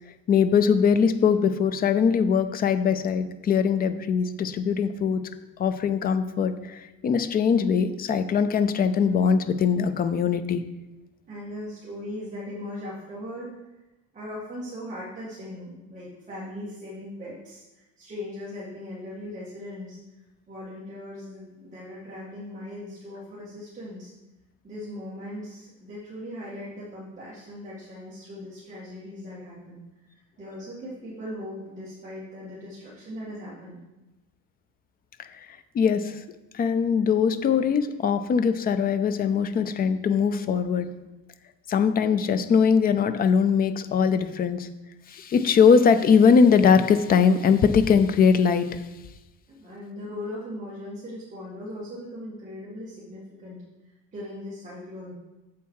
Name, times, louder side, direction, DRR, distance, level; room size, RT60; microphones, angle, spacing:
voice 1, 0.3-5.2 5.6-10.6 35.2-35.3 35.7-36.2 36.5-40.9 41.7-44.7 45.1-48.8, left 6 dB, 25° left, 10 dB, 0.4 m, -21 dB
voice 2, 11.3-13.5 14.1-20.0 20.5-24.1 24.6-29.8 30.4-33.8 49.6-53.6 54.1-55.1, left 1 dB, 20° right, -8 dB, 2.0 m, -39 dB
7.4 x 7.0 x 4.7 m, 1.1 s
cardioid pair, 175°, 34 cm